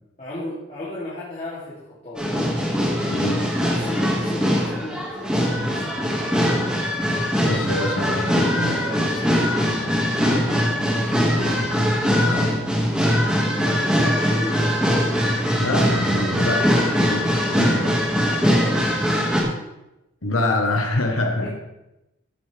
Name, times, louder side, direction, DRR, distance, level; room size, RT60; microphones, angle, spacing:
voice 1, 0.2-2.5 3.7-6.7 8.5-9.0 10.2-10.6 10.8-11.4 13.4-15.3 18.4-19.0 21.4-21.5, left 1 dB, 35° left, -10 dB, 3.0 m, -36 dB
sound 1, 2.2-19.4, equal, 5° right, 2.0 m, -21 dB
voice 2, 3.0-3.5 7.4-8.8 11.4-11.5 12.2-12.6 15.6-16.7 16.9-18.0 20.2-21.5, left 2 dB, 85° left, 2 dB, 1.4 m, -26 dB
15.0 x 9.1 x 3.5 m, 0.94 s
head